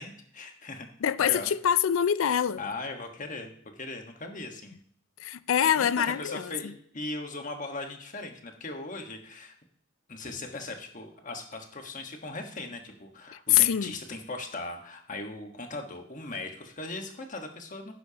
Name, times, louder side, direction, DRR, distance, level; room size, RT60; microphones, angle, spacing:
voice 1, 0.0-0.9 1.2-1.5 2.6-4.8 5.8-9.5 10.1-17.9, left 2 dB, 40° left, 1.4 m, -39 dB
voice 2, 1.0-2.6 5.2-6.5 13.5-13.9, left 9 dB, 75° left, 0.4 m, -24 dB
11.5 x 10.0 x 2.9 m
head